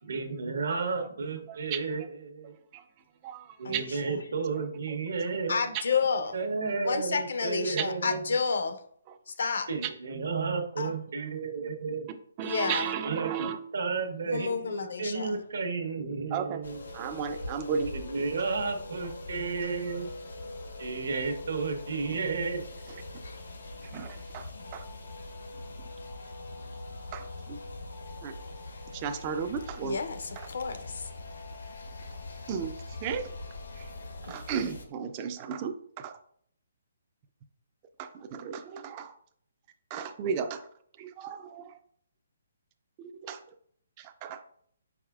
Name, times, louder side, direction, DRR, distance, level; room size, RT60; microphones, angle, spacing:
voice 1, 0.1-2.5 3.6-5.7 6.3-8.4 9.7-12.1 13.0-16.8 17.9-20.1 20.8-22.6, right 4 dB, 75° right, 1.0 m, -32 dB
voice 2, 1.5-1.8 2.7-2.8 3.2-3.8 4.9-5.0 7.8-7.9 12.4-13.6 16.3-16.6 16.9-17.9 23.9-24.8 27.1-27.6 28.2-28.3 28.9-30.0 30.4-30.5 32.5-32.7 33.0-33.3 33.8-33.9 34.2-36.2 38.0-39.1 39.9-40.7 41.0-41.7 43.0-43.4 44.0-44.4, right 7 dB, 25° right, 0.3 m, -34 dB
voice 3, 3.6-4.2 5.5-6.3 6.9-8.8 9.3-9.7 10.8-10.9 12.4-12.9 14.3-15.4 29.8-31.1, left 5 dB, 70° left, 0.6 m, -30 dB
sound 1, 16.6-34.8, left 2 dB, 90° left, 1.1 m, -42 dB
4.8 x 4.5 x 2.4 m
hypercardioid pair, 160°, 0 cm